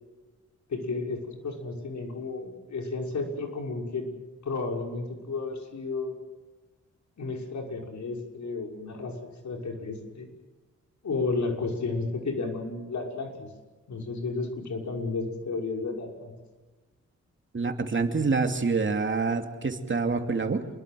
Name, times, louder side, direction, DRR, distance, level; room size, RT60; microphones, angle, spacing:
voice 1, 0.7-4.1 4.4-6.2 7.2-10.3 11.0-13.5 13.9-16.3, left 3 dB, 75° left, 2 dB, 6.1 m, -32 dB
voice 2, 17.5-20.7, right 4 dB, 40° right, 6 dB, 2.8 m, -26 dB
28.5 x 22.5 x 7.9 m, 1.2 s
cardioid pair, 90°, 29 cm